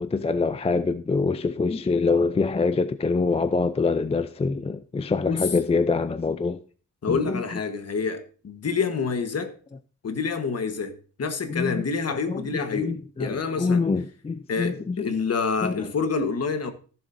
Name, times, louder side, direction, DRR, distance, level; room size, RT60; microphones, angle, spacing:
voice 1, 0.0-6.6 7.1-7.4 11.5-11.8 12.3-15.1 15.6-15.9, left 4 dB, 20° left, 0.4 m, -25 dB
voice 2, 7.0-9.5 10.0-13.8 14.5-16.7, left 5 dB, 50° left, 1.3 m, -27 dB
15.0 x 7.2 x 2.6 m
wide cardioid pair, 115°, 32 cm